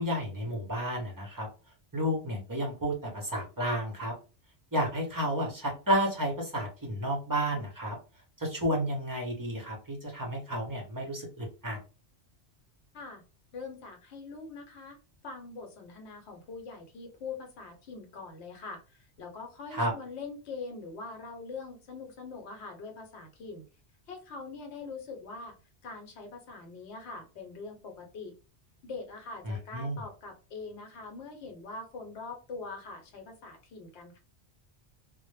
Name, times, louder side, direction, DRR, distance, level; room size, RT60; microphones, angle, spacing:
voice 1, 0.0-1.5 1.9-4.1 4.7-8.0 8.4-11.8 19.7-19.9 29.4-30.0, equal, 25° right, -1 dB, 0.4 m, -31 dB
voice 2, 13.5-15.0 15.2-23.6 24.1-25.5 25.8-28.3 28.8-34.2, left 4 dB, 70° left, 3 dB, 1.0 m, -43 dB
2.1 x 2.0 x 3.1 m, 0.35 s
omnidirectional pair, 1.2 m